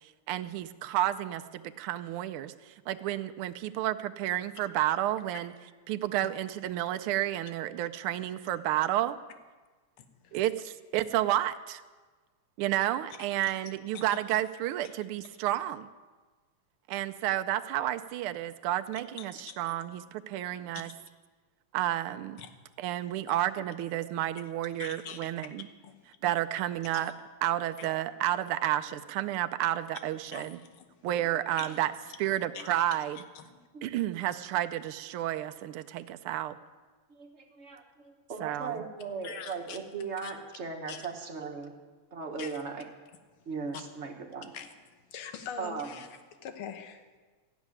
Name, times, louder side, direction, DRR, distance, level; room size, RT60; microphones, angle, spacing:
voice 1, 0.3-5.5 5.9-9.2 10.3-10.5 10.9-11.8 12.6-15.9 16.9-20.9 21.7-22.4 22.8-25.7 26.2-27.1 27.4-30.6 31.0-31.9 32.2-33.2 33.8-36.5 38.4-38.8, right 13 dB, 80° right, 9 dB, 1.5 m, -31 dB
voice 2, 10.0-10.4 13.2-13.3 13.9-14.2 19.2-19.6 20.7-20.9 22.4-22.5 24.8-25.5 25.8-26.0 27.0-27.1 27.8-27.9 30.3-30.9 31.6-31.8 32.5-32.6 33.4-33.5 39.2-39.8 40.2-40.3 40.9-41.1 42.4-42.6 43.7-43.8 44.5-44.8 45.1-46.1 46.4-47.1, left 8 dB, 75° left, 7 dB, 1.9 m, -43 dB
voice 3, 33.4-33.9 37.1-37.8 38.3-41.8 42.1-42.9 43.5-44.5 45.6-46.0, right 5 dB, 40° right, 3 dB, 1.1 m, -38 dB
13.5 x 7.2 x 9.7 m, 1.4 s
omnidirectional pair, 2.4 m